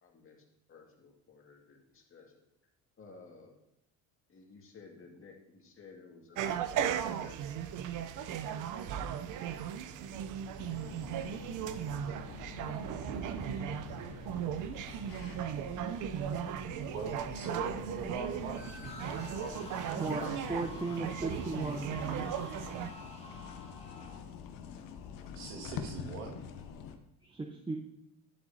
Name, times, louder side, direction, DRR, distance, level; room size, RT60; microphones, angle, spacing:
voice 1, 0.0-2.3 3.0-3.6 4.3-7.4 7.6-9.0 20.1-21.0, left 4 dB, 35° left, 1 dB, 1.9 m, -54 dB
sound 1, 6.4-22.9, right 9 dB, 60° right, 0.6 m, -37 dB
sound 2, 10.6-27.0, left 7 dB, 70° left, 0.9 m, -47 dB
voice 2, 16.9-18.6 19.4-19.6 20.2-20.3 25.4-26.4, right 5 dB, 75° right, 0 dB, 1.8 m, -40 dB
sound 3, 18.6-24.2, left 2 dB, 20° left, 2.0 m, -49 dB
voice 3, 20.5-22.2 27.2-27.8, right 3 dB, 15° right, 0 dB, 0.8 m, -36 dB
11.5 x 7.9 x 2.7 m, 0.82 s
supercardioid pair, 95°, 35 cm